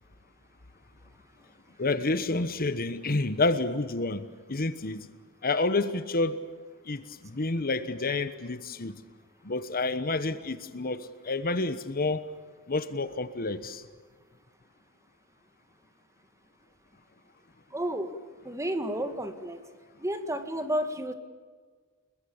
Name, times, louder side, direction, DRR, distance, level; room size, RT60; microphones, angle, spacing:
voice 1, 1.8-5.1 5.4-6.4 6.8-9.0 9.4-12.2 12.7-13.8, left 3 dB, 45° left, 12 dB, 1.2 m, -29 dB
voice 2, 17.7-18.1 18.4-19.6 20.0-21.1, right 1 dB, 15° right, 8 dB, 2.0 m, -31 dB
30.0 x 21.5 x 7.3 m, 1.5 s
head